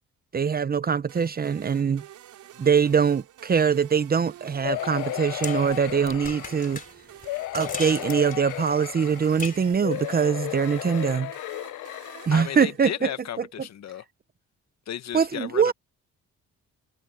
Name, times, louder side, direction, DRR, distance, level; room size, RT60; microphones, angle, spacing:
voice 1, 0.3-2.0 2.6-6.8 7.5-11.3 12.3-13.1 15.1-15.7, right 6 dB, 30° right, 0.7 m, -23 dB
sound 1, 1.1-13.3, right 12 dB, 80° right, 3.4 m, -48 dB
sound 2, 4.6-6.8 7.3-9.4 9.8-12.7 13.3-13.4 13.6-13.7, left 16 dB, 85° left, 0.7 m, -34 dB
sound 3, 4.6-9.7, left 4 dB, 30° left, 3.2 m, -39 dB
voice 2, 12.3-14.0 14.9-15.7, left 10 dB, 60° left, 1.5 m, -34 dB
cardioid pair, 90°, 30 cm